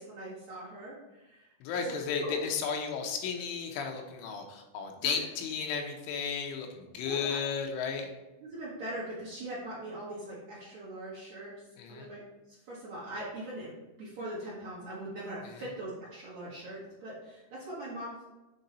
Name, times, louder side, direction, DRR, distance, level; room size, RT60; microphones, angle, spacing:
voice 1, 0.0-1.9 2.2-2.4 5.0-5.2 7.0-7.4 8.4-11.5 11.9-12.2 12.5-13.7 14.0-18.1, right 1 dB, 55° right, -8 dB, 2.1 m, -41 dB
voice 2, 1.6-8.1 11.8-12.1 15.5-15.6, left 6 dB, 85° left, 3 dB, 3.3 m, -34 dB
7.9 x 3.8 x 4.1 m, 1.0 s
omnidirectional pair, 5.5 m